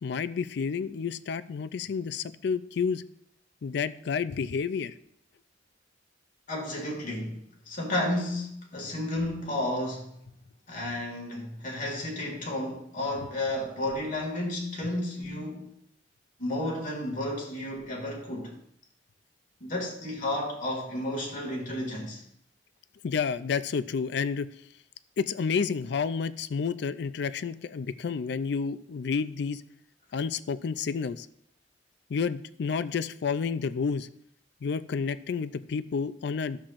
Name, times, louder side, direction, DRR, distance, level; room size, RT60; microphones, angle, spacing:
voice 1, 0.0-3.0 3.6-4.9 23.0-24.5 25.2-29.6 30.1-31.3 32.1-34.1 34.6-36.6, left 5 dB, 65° left, 0.4 m, -30 dB
voice 2, 6.5-10.3 10.7-15.7 16.4-18.5 19.6-22.2, left 1 dB, 45° left, 2.3 m, -32 dB
12.5 x 7.3 x 2.5 m
head